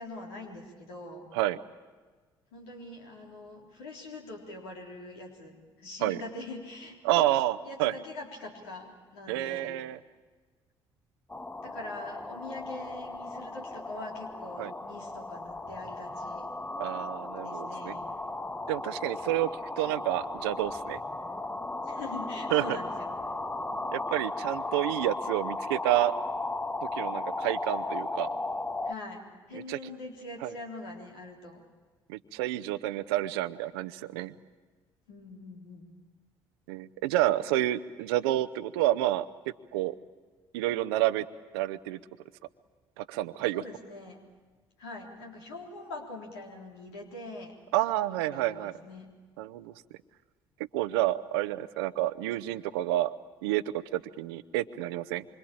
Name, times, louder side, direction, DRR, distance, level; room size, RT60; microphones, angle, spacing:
voice 1, 0.0-1.3 2.5-7.4 7.6-9.7 11.6-16.5 17.4-18.1 21.9-23.1 28.8-31.6 35.1-35.9 43.5-44.2 44.8-47.5 48.1-49.1, left 2 dB, 80° left, 0 dB, 3.7 m, -43 dB
voice 2, 7.0-8.0 9.3-10.0 14.6-14.7 16.8-18.0 18.7-19.5 19.8-21.0 22.5-22.8 23.9-26.1 26.8-28.3 29.5-29.9 30.4-30.5 32.1-34.3 36.7-39.3 39.7-40.0 40.5-41.2 41.5-42.0 43.0-43.6 47.7-48.7 49.4-49.7 50.7-53.1 53.4-55.2, right 15 dB, 80° right, 13 dB, 0.8 m, -29 dB
sound 1, 11.3-28.9, left 2 dB, 10° left, 0.8 m, -36 dB
26.0 x 25.0 x 8.8 m, 1.4 s
hypercardioid pair, 50°, 13 cm